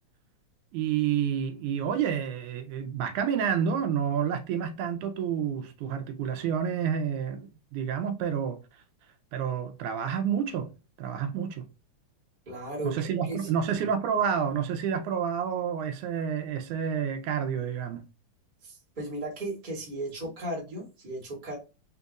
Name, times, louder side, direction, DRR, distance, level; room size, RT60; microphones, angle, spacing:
voice 1, 0.7-8.6 9.3-10.7 11.0-11.7 12.8-18.0, right 8 dB, 90° right, 2.1 m, -29 dB
voice 2, 12.4-13.7 18.6-21.6, right 1 dB, 20° right, 1.5 m, -36 dB
4.4 x 4.0 x 2.3 m
omnidirectional pair, 3.5 m